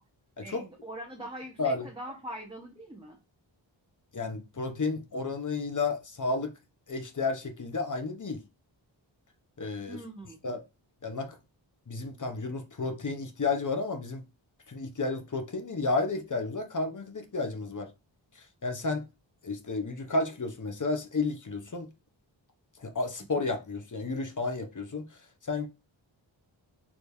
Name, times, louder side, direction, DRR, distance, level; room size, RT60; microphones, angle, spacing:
voice 1, 0.4-3.2 9.9-10.5, right 1 dB, 10° right, 1.0 m, -42 dB
voice 2, 4.1-6.5 6.9-8.4 9.6-10.0 10.4-10.6 11.0-11.4 11.9-14.2 14.7-17.9 18.4-19.0 19.4-21.9 22.8-25.1 25.4-25.7, left 3 dB, 40° left, 1.0 m, -32 dB
5.0 x 3.3 x 2.7 m
cardioid pair, 50°, 48 cm